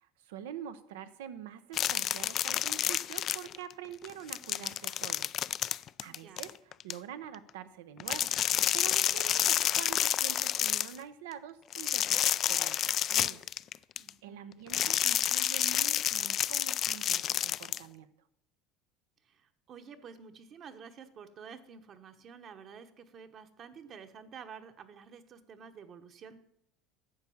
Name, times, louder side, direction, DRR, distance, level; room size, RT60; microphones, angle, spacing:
voice 1, 0.0-5.3 6.0-8.3 8.7-13.4 14.2-18.1, right 9 dB, 85° right, 11 dB, 0.8 m, -46 dB
sound 1, 1.7-3.7 4.0-6.9 8.0-11.0 11.7-14.1 14.7-17.8, left 11 dB, 45° left, 0.3 m, -29 dB
voice 2, 6.0-6.4 14.0-14.6 19.2-26.4, right 6 dB, 45° right, 7 dB, 1.1 m, -50 dB
9.8 x 6.8 x 7.1 m, 0.77 s
supercardioid pair, 105°, 0 cm